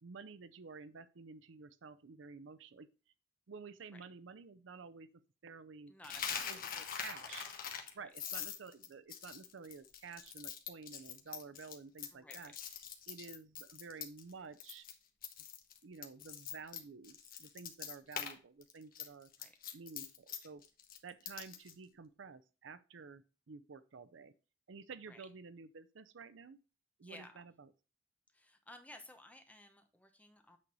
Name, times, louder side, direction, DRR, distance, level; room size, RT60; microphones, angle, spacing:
voice 1, 0.0-2.9 3.5-5.1 5.4-5.9 6.5-7.5 7.9-12.5 13.1-14.9 15.8-19.3 19.7-20.6 21.0-24.3 24.7-26.6 27.0-27.7, right 5 dB, 70° right, 14 dB, 0.5 m, -51 dB
voice 2, 5.9-6.9 7.2-7.3 8.0-8.1 12.1-12.5 19.4-19.5 25.1-25.2 27.0-27.5 28.3-30.6, left 1 dB, 10° left, 6 dB, 1.0 m, -56 dB
Coin (dropping), 6.0-14.3 14.6-14.9 15.2-18.3 18.6-21.7, left 8 dB, 50° left, 1.1 m, -44 dB
8.6 x 4.0 x 4.7 m, 0.34 s
head